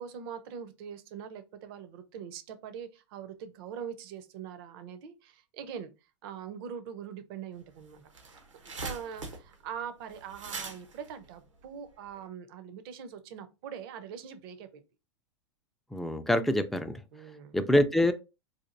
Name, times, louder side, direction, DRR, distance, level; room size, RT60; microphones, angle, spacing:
voice 1, 0.0-5.9 6.2-8.0 8.6-14.8 17.1-17.6, right 8 dB, 50° right, 0.6 m, -42 dB
sound 1, 7.6-7.7 7.9-12.2, right 3 dB, 85° right, 0.9 m, -42 dB
voice 2, 15.9-17.0 17.5-18.1, left 1 dB, ahead, 0.3 m, -25 dB
4.2 x 2.5 x 2.5 m
hypercardioid pair, 100°, 15 cm